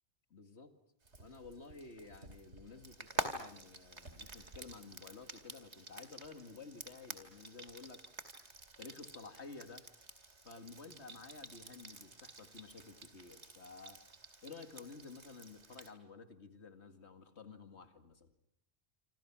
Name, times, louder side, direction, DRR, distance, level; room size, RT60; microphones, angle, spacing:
voice 1, 0.3-0.7 1.2-8.1 8.8-9.9 10.4-14.0 14.4-18.3, left 4 dB, 70° left, 8 dB, 2.4 m, -52 dB
Frying (food), 1.0-15.9, right 2 dB, 75° right, 2.8 m, -48 dB
27.5 x 26.5 x 6.1 m, 0.72 s
omnidirectional pair, 1.2 m